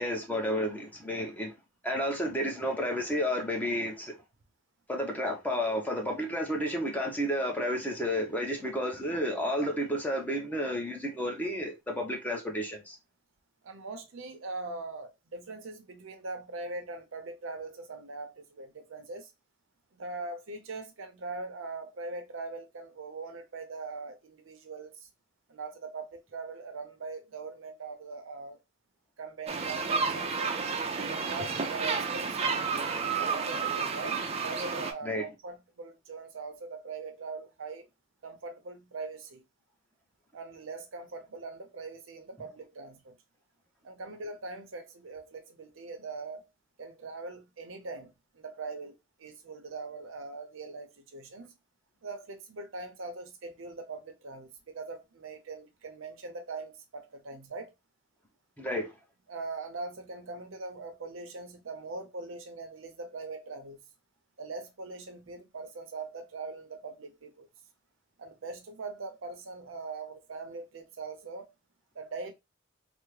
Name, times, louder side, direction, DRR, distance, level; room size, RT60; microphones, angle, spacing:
voice 1, 0.0-1.5 1.8-4.2 4.9-13.0 35.0-35.2 58.6-58.9, equal, 10° left, 0.7 m, -31 dB
voice 2, 2.0-2.4 13.6-19.3 19.9-25.1 25.5-28.6 29.2-30.6 31.1-32.7 33.0-37.9 38.2-39.4 40.3-43.2 43.8-46.5 46.8-51.5 52.0-57.7 59.3-63.8 64.4-67.5 68.2-71.5 71.9-72.3, right 3 dB, 85° right, 0.6 m, -41 dB
sound 1, 29.5-34.9, right 5 dB, 30° right, 0.4 m, -31 dB
3.4 x 2.0 x 3.1 m
head